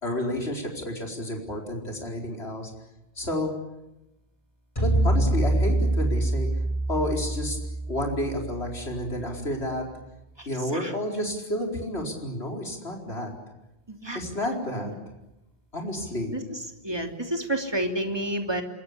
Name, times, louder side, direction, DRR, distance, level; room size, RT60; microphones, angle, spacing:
voice 1, 0.0-2.7 3.1-3.5 4.8-6.5 6.9-7.6 7.9-9.9 10.4-13.3 14.1-14.9 15.7-16.4 16.8-16.9, left 1 dB, 80° left, 1 dB, 4.9 m, -30 dB
sound 1, 4.8-9.1, right 1 dB, 30° left, 4.6 m, -25 dB
voice 2, 13.9-14.2 14.8-14.9 16.3-18.6, right 1 dB, 25° right, 4 dB, 3.2 m, -30 dB
27.0 x 23.5 x 8.5 m, 0.93 s
omnidirectional pair, 1.1 m